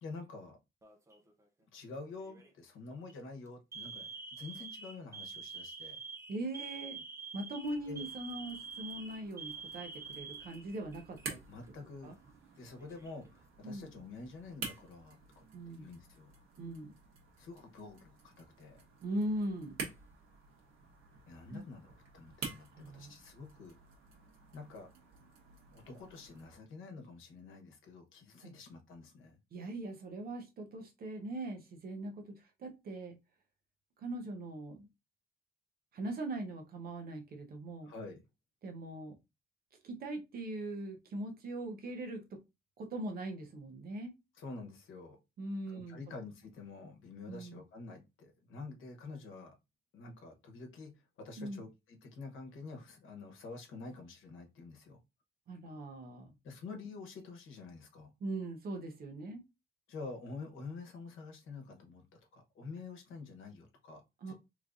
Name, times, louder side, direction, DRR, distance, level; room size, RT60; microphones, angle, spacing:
voice 1, 0.0-0.6 1.7-6.0 7.9-8.0 11.5-12.1 12.6-16.3 17.4-18.8 21.3-23.8 24.5-24.9 25.7-29.4 37.8-38.2 44.3-45.2 45.7-49.6 49.9-55.0 56.4-58.1 59.9-64.3, left 3 dB, 75° left, 1.0 m, -48 dB
Alarm, 0.8-1.3 2.2-2.5 3.0-3.1 3.7-11.3 11.6-11.7 12.6-13.3, right 5 dB, 15° right, 0.5 m, -46 dB
voice 2, 6.3-7.0 7.3-11.4 12.0-12.1 13.6-13.9 15.5-15.8 16.6-16.9 19.0-19.8 21.5-21.6 22.7-23.1 28.4-28.5 29.5-33.2 34.0-34.9 35.9-37.9 38.6-39.2 39.8-42.4 42.8-44.2 45.4-46.0 47.3-47.6 51.4-51.6 55.5-56.3 58.2-59.4 64.2-64.3, right 1 dB, 45° right, 0.7 m, -41 dB
sound 1, 7.6-26.5, right 5 dB, 80° right, 1.2 m, -50 dB
3.5 x 3.1 x 2.5 m
cardioid pair, 175°, 21 cm